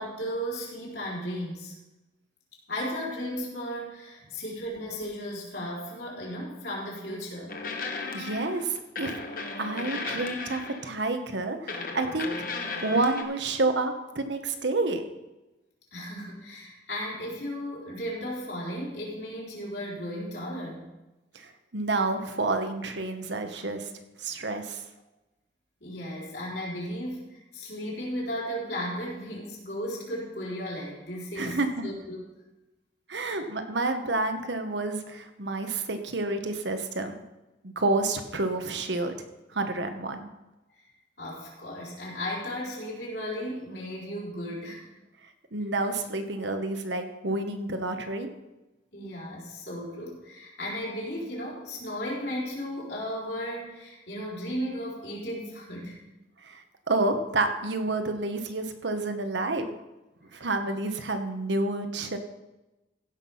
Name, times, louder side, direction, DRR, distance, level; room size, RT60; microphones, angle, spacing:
voice 1, 0.0-1.7 2.7-7.6 15.9-20.9 25.8-32.2 33.2-33.4 41.2-44.9 48.9-56.0 60.3-60.4, equal, 65° left, -5 dB, 4.1 m, -35 dB
sound 1, 7.5-11.0 11.7-13.2, left 3 dB, 50° left, 1.3 m, -35 dB
voice 2, 8.1-9.1 9.6-12.3 12.8-15.0 21.3-23.9 24.2-24.8 31.4-31.8 33.1-37.2 37.6-39.2 39.5-40.3 45.5-48.3 56.4-59.7 60.3-62.2, right 2 dB, 75° right, 7 dB, 1.2 m, -29 dB
16.0 x 6.1 x 5.6 m, 1.0 s
head